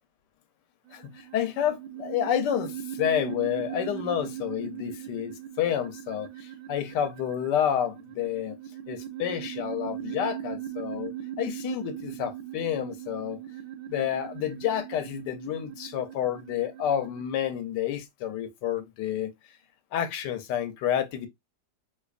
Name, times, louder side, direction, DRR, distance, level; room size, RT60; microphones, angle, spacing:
voice 1, 0.9-8.6 8.9-13.4 13.9-19.3 19.9-21.3, left 10 dB, 85° left, 1.3 m, -29 dB
sound 1, 0.9-17.2, right 11 dB, 75° right, 1.1 m, -39 dB
4.2 x 2.6 x 2.4 m
omnidirectional pair, 1.8 m